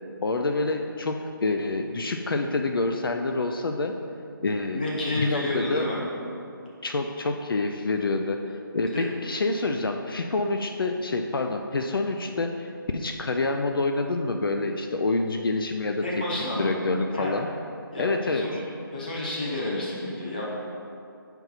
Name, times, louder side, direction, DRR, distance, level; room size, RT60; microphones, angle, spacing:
voice 1, 0.2-3.9 4.4-4.8 5.2-5.9 6.8-16.0 16.6-17.5 18.0-18.4, left 3 dB, 70° left, 4 dB, 0.4 m, -27 dB
voice 2, 4.7-6.0 8.9-9.1 16.0-16.7 17.1-17.3 17.9-18.6 18.9-20.4, left 1 dB, 25° left, -5 dB, 0.9 m, -30 dB
6.5 x 4.5 x 4.0 m, 2.6 s
hypercardioid pair, 180°, 12 cm